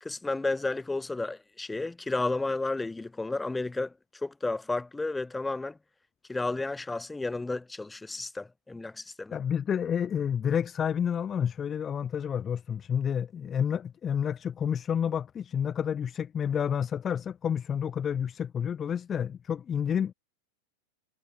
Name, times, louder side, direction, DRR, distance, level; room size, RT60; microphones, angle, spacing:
voice 1, 0.0-5.8 6.3-9.4, left 2 dB, 10° left, 1.9 m, -32 dB
voice 2, 9.3-20.1, left 8 dB, 25° left, 0.3 m, -29 dB
figure-of-eight pair, 90°, 0 cm